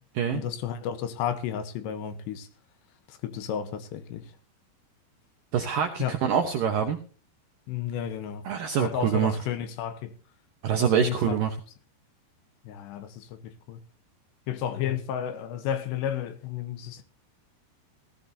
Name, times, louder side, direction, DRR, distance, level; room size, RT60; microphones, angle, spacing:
voice 1, 0.3-2.5 3.1-4.3 6.0-6.1 7.7-8.4 8.8-10.1 11.0-11.4 12.7-13.8 14.5-17.0, left 9 dB, 75° left, 3.0 m, -32 dB
voice 2, 5.5-7.0 8.4-9.4 10.6-11.6, right 8 dB, 75° right, 2.1 m, -25 dB
16.0 x 15.0 x 2.7 m
omnidirectional pair, 5.3 m